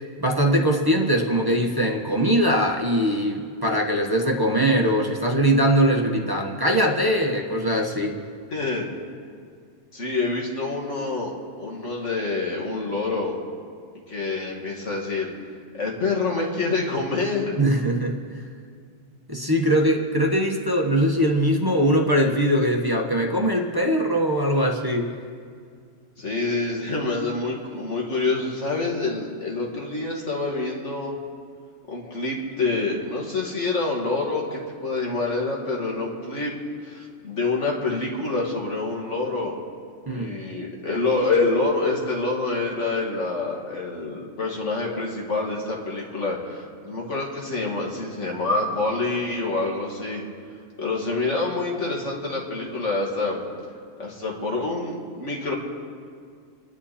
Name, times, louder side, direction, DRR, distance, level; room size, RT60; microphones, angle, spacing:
voice 1, 0.2-8.2 17.6-18.4 19.3-25.1 40.1-40.4, equal, 20° right, -1 dB, 1.3 m, -21 dB
voice 2, 8.5-8.9 9.9-13.4 14.1-15.3 15.7-17.6 26.2-31.2 31.9-36.6 36.8-39.6 40.1-50.2 50.8-53.5 54.0-55.5, left 3 dB, 80° left, -2 dB, 2.7 m, -27 dB
28.0 x 10.5 x 4.3 m, 2.2 s
omnidirectional pair, 1.2 m